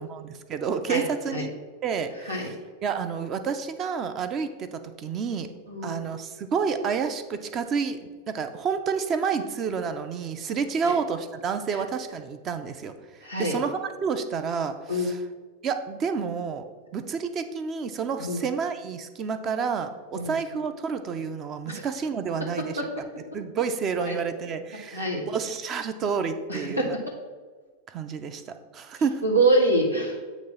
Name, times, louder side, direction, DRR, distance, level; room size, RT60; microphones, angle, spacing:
voice 1, 0.0-1.5 1.8-2.5 2.8-5.5 5.8-12.9 13.4-15.2 15.6-16.7 16.9-22.8 23.3-26.9 27.9-28.4 28.7-29.2, right 6 dB, 30° right, 10 dB, 0.6 m, -29 dB
voice 2, 0.9-1.4 2.2-2.5 5.7-6.0 10.8-10.9 11.7-11.8 13.2-13.6 14.9-15.1 18.2-18.4 20.1-20.4 21.7-21.8 22.8-22.9 24.1-24.2 24.9-25.2 26.5-26.9 29.2-30.2, right 1 dB, 90° right, -1 dB, 1.4 m, -25 dB
8.5 x 3.0 x 5.7 m, 1.4 s
figure-of-eight pair, 90°, 0 cm